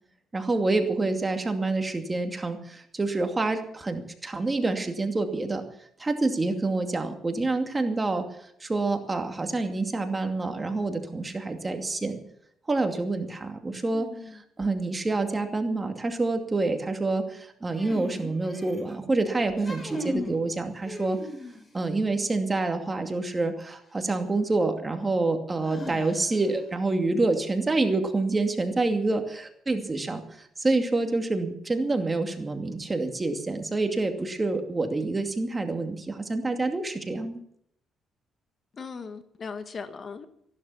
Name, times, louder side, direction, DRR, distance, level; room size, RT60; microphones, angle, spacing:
voice 1, 0.3-5.6 6.0-8.2 8.6-12.2 12.7-14.1 14.6-21.2 21.7-37.4, right 3 dB, 25° right, 2.4 m, -27 dB
voice 2, 13.9-14.4 38.8-40.3, left 5 dB, 45° left, 1.4 m, -39 dB
sound 1, 17.7-18.9 19.5-20.4 20.8-21.8 23.7-23.8 25.6-26.5, left 1 dB, 20° left, 5.2 m, -36 dB
14.5 x 12.0 x 7.1 m
cardioid pair, 90°, 0 cm